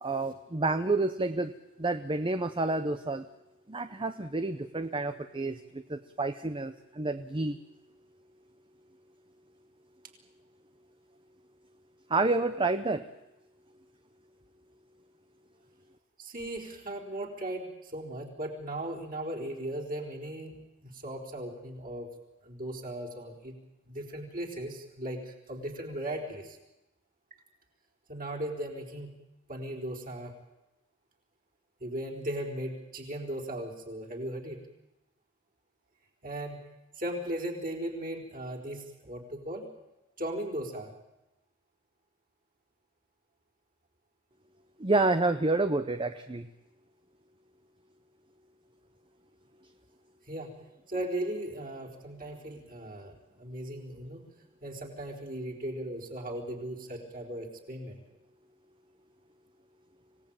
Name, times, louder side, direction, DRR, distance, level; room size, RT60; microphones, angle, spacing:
voice 1, 0.0-1.5 1.8-3.3 3.7-7.6 12.1-13.0 44.8-46.5, right 2 dB, 25° right, 9 dB, 0.8 m, -29 dB
voice 2, 16.2-20.6 20.8-22.1 22.4-23.6 23.9-26.6 28.1-29.1 29.5-30.3 31.8-34.6 36.2-36.6 37.0-39.6 40.2-40.9 50.3-50.5 50.9-54.2 54.6-58.0, right 1 dB, 40° right, -1 dB, 4.2 m, -37 dB
25.5 x 17.5 x 8.8 m, 0.97 s
head